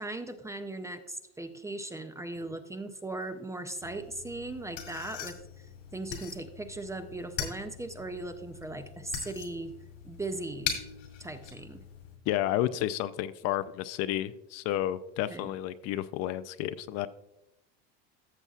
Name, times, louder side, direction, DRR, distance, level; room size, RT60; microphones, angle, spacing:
voice 1, 0.0-5.7 5.9-9.7 10.0-10.7 11.2-11.8 15.3-15.5, right 2 dB, 10° right, 8 dB, 0.4 m, -38 dB
sound 1, 3.8-12.2, left 8 dB, 80° left, 2.3 m, -41 dB
voice 2, 12.3-17.1, left 13 dB, 50° left, 14 dB, 0.4 m, -31 dB
14.0 x 6.9 x 2.3 m, 0.90 s
supercardioid pair, 125°, 34 cm